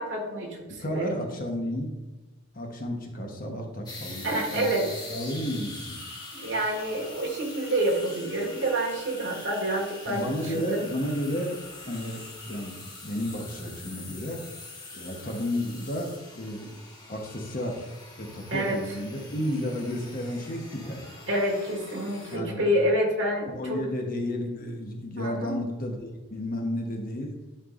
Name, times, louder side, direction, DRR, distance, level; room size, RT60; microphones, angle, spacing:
voice 1, 0.0-1.2 4.2-4.9 6.3-10.9 18.5-18.8 21.3-23.8 25.2-25.6, right 1 dB, 60° right, -1 dB, 1.8 m, -28 dB
voice 2, 0.8-1.9 2.5-6.0 10.1-11.6 11.8-14.4 14.9-16.8 17.1-17.9 18.2-21.0 22.3-22.6 23.5-27.4, left 1 dB, 40° left, 2 dB, 1.0 m, -32 dB
sound 1, 3.9-22.4, left 2 dB, 20° left, 1.1 m, -44 dB
11.0 x 4.5 x 2.5 m, 1.2 s
head